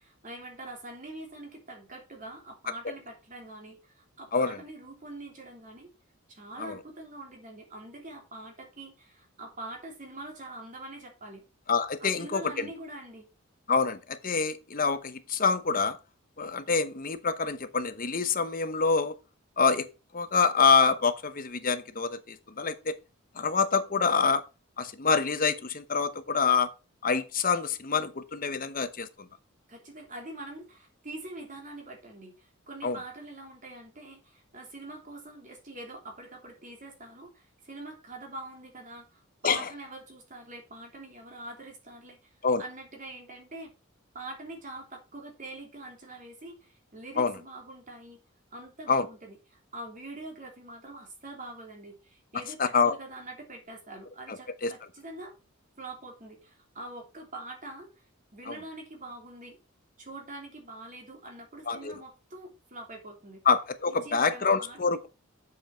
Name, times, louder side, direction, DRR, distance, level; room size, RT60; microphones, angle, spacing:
voice 1, 0.2-5.9 6.3-11.4 12.0-13.3 29.7-42.2 42.6-43.7 44.1-48.2 48.5-55.3 55.8-57.9 58.3-59.6 60.0-63.4 64.0-64.8, right 2 dB, 40° right, 3.1 m, -44 dB
voice 2, 11.7-12.7 13.7-16.0 16.4-19.1 19.6-19.9 20.1-22.9 23.4-24.4 24.8-26.7 27.0-29.1 32.8-33.0 39.4-39.6 42.4-42.6 47.2-47.3 48.9-49.1 52.6-53.0 54.6-54.7 58.5-58.6 61.7-61.9 63.5-65.1, left 5 dB, 45° left, 1.0 m, -26 dB
8.0 x 6.9 x 4.5 m
head